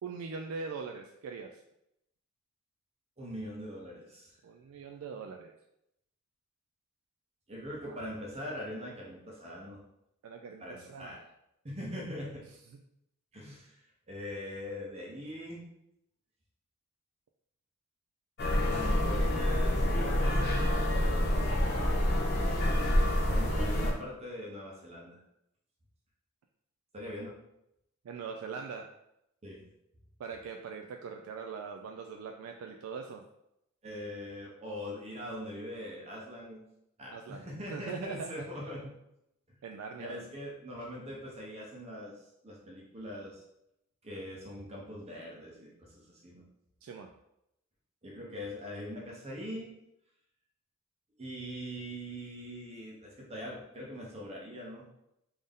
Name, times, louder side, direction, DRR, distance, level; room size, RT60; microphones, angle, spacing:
voice 1, 0.0-1.6 4.4-5.5 7.8-8.0 10.2-11.2 28.0-28.9 30.2-33.2 37.1-38.4 39.6-40.3 46.8-47.1, right 5 dB, 75° right, 3 dB, 0.3 m, -41 dB
voice 2, 3.2-4.3 7.5-9.8 10.6-11.3 11.6-12.4 13.3-13.8 14.1-15.7 18.7-21.3 23.3-25.2 26.9-27.4 29.4-29.7 33.8-36.6 37.0-38.9 39.5-39.6 40.0-42.1 42.4-43.4 44.0-46.4 48.0-49.7 51.2-54.9, equal, 30° right, -3 dB, 0.7 m, -42 dB
sound 1, 18.4-23.9, left 1 dB, 50° left, 0.7 m, -27 dB
3.6 x 2.6 x 3.5 m, 0.82 s
head